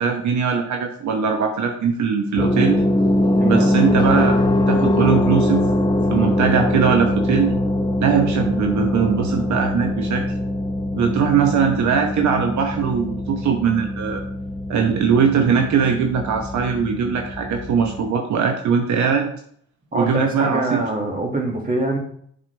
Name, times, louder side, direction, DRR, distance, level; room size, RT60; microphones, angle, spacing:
voice 1, 0.0-2.8 3.4-4.4 4.7-5.7 6.1-7.5 8.0-10.3 10.9-14.2 14.7-19.3 19.9-20.8, right 6 dB, 70° right, 3 dB, 1.0 m, -20 dB
sound 1, 2.4-18.0, left 1 dB, 15° left, 0.8 m, -22 dB
voice 2, 3.4-3.7 19.9-22.0, right 2 dB, 30° right, 1 dB, 2.1 m, -24 dB
7.4 x 5.8 x 3.4 m, 0.63 s
cardioid pair, 90°, 30 cm